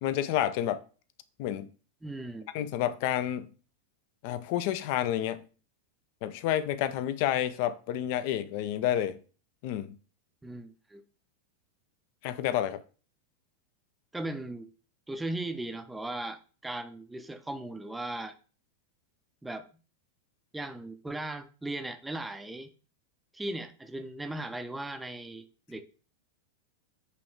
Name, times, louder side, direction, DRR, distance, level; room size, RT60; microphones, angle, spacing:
voice 1, 0.0-0.8 1.4-1.7 2.5-3.5 4.2-5.5 6.2-9.2 9.6-10.0 12.2-12.8, left 11 dB, 45° left, 0.4 m, -29 dB
voice 2, 2.0-2.5 10.4-11.0 14.1-14.7 15.1-18.3 19.4-19.7 20.5-22.7 23.3-25.8, right 1 dB, 5° right, 0.5 m, -37 dB
5.5 x 3.1 x 3.0 m
figure-of-eight pair, 90°, 0 cm